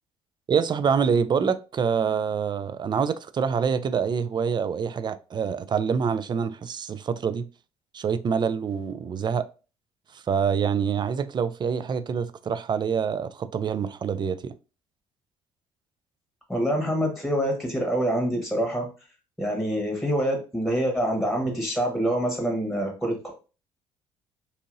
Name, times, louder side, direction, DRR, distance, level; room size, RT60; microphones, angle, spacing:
voice 1, 0.5-7.5 7.9-9.4 10.3-14.5, right 6 dB, 35° right, 0.3 m, -26 dB
voice 2, 16.5-18.9 19.4-23.3, equal, ahead, 1.3 m, -26 dB
2.8 x 2.7 x 2.5 m
hypercardioid pair, 65°, 13 cm